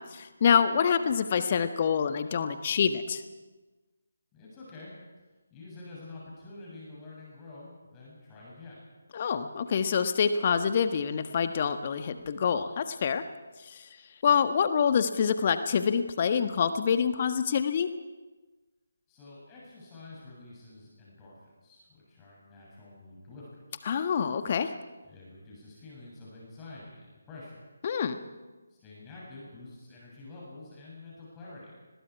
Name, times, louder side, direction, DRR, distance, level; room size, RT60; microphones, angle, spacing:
voice 1, 0.1-3.2 9.1-13.2 13.6-13.8 14.2-17.9 23.9-24.7 27.8-28.2, left 7 dB, 35° left, 9 dB, 1.5 m, -26 dB
voice 2, 4.3-4.9 5.5-8.8 19.1-23.8 25.0-27.6 28.7-31.7, left 2 dB, 15° left, -5 dB, 7.3 m, -48 dB
30.0 x 21.5 x 4.7 m, 1.2 s
figure-of-eight pair, 150°, 0 cm